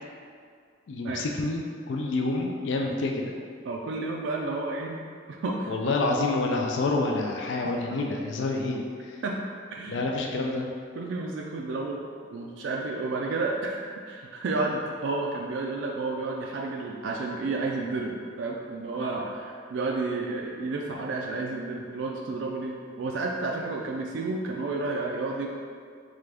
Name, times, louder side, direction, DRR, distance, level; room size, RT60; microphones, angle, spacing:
voice 1, 0.9-3.2 5.7-9.2 9.9-10.7, left 2 dB, 65° left, 1 dB, 0.4 m, -28 dB
voice 2, 3.6-5.0 5.3-6.0 9.2-9.4 9.7-10.0 11.0-12.0 12.3-25.5, right 3 dB, 70° right, -1 dB, 0.3 m, -31 dB
3.7 x 3.3 x 3.4 m, 2.1 s
head